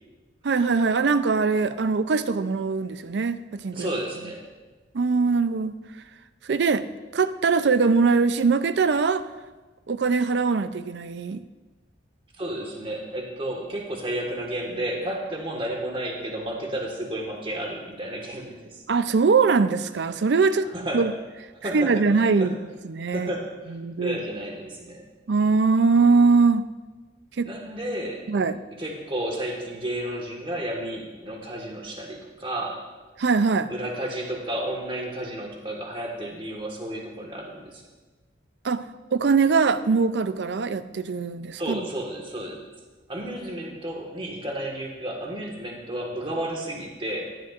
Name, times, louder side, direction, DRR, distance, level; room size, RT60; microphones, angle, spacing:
voice 1, 0.4-3.9 4.9-5.7 6.4-6.9 7.1-9.3 9.9-11.4 18.9-21.1 21.6-22.6 22.8-23.3 23.7-24.2 25.3-26.7 27.4-27.5 28.3-28.6 33.2-33.7 38.6-38.9 39.1-41.9, right 4 dB, 65° right, 12 dB, 0.4 m, -22 dB
voice 2, 3.7-4.4 12.4-18.8 20.7-21.1 21.6-22.5 23.1-25.0 27.4-28.2 28.8-32.8 33.7-37.8 41.6-42.6 43.1-47.3, right 1 dB, 30° right, 0 dB, 1.6 m, -32 dB
15.5 x 11.0 x 2.5 m, 1.3 s
head